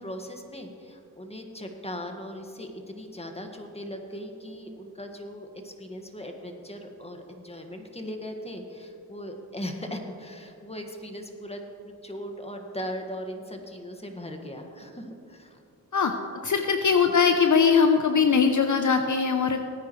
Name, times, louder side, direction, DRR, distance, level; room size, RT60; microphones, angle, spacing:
voice 1, 0.0-15.6, equal, 15° left, 3 dB, 1.8 m, -39 dB
voice 2, 16.4-19.6, left 6 dB, 50° left, 6 dB, 0.8 m, -21 dB
18.5 x 9.6 x 3.2 m, 2.6 s
cardioid pair, 45°, 37 cm